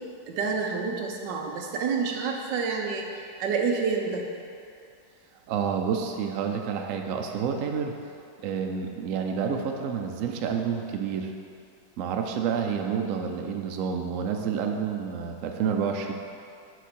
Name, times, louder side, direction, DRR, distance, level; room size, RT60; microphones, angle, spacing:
voice 1, 0.3-3.1 3.4-4.2, right 5 dB, 75° right, 1 dB, 1.3 m, -28 dB
voice 2, 5.5-7.9 8.4-11.3 12.0-16.1, right 6 dB, 90° right, 4 dB, 0.7 m, -29 dB
6.3 x 5.0 x 4.3 m, 2.4 s
omnidirectional pair, 2.1 m